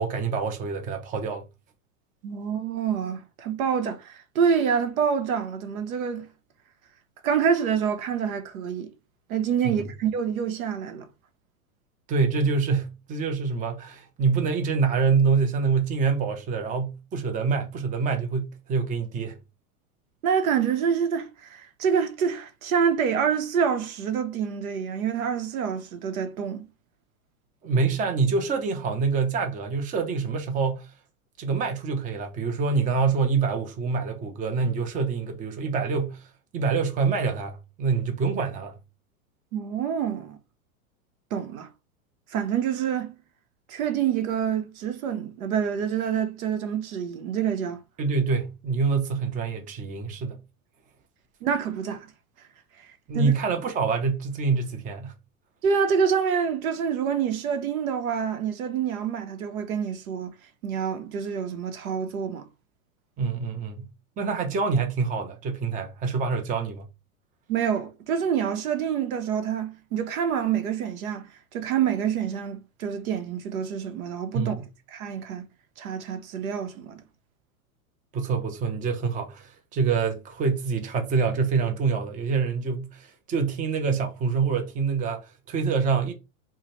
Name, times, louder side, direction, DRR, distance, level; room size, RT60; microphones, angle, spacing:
voice 1, 0.0-1.4 9.6-9.8 12.1-19.4 27.6-30.9 31.4-36.3 36.5-38.8 48.0-50.4 53.1-55.1 63.2-63.9 64.2-66.9 74.3-74.7 78.1-86.1, right 5 dB, 20° right, 0.6 m, -26 dB
voice 2, 2.2-6.3 7.2-8.9 9.3-11.1 20.2-26.7 39.5-40.4 41.3-41.7 42.3-43.2 43.7-47.8 51.4-52.1 52.8-52.9 53.1-53.3 55.6-60.3 60.6-62.5 67.5-74.6 74.9-75.5 75.8-77.0, right 7 dB, 70° right, 1.0 m, -27 dB
4.6 x 2.2 x 3.1 m
hypercardioid pair, 115°, 43 cm